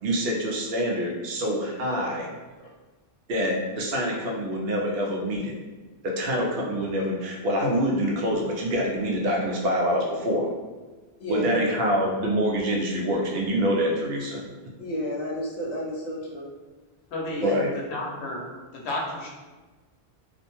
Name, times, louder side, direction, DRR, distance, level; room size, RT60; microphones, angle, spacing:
voice 1, 0.0-2.3 3.3-5.5 6.0-10.5 11.3-14.4 17.4-17.7, equal, 70° right, -1 dB, 0.8 m, -26 dB
voice 2, 11.2-11.7 14.8-16.5 17.4-17.6, equal, 55° left, -3 dB, 0.5 m, -31 dB
voice 3, 17.1-17.5 17.7-19.3, left 1 dB, 80° left, -2 dB, 0.9 m, -32 dB
2.5 x 2.1 x 2.9 m, 1.3 s
omnidirectional pair, 1.1 m